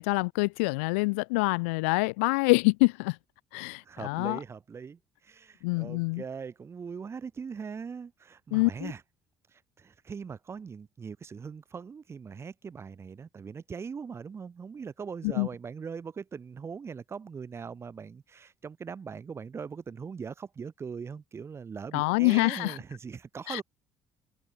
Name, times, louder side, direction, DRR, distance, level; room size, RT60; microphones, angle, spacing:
voice 1, 0.0-3.2 3.5-4.4 5.6-6.2 8.5-8.9 15.2-15.5 21.9-22.8 23.5-23.6, left 28 dB, 85° left, 0.6 m, -26 dB
voice 2, 3.8-9.0 9.5-23.6, right 6 dB, 40° right, 6.0 m, -41 dB
hypercardioid pair, 60°, 7 cm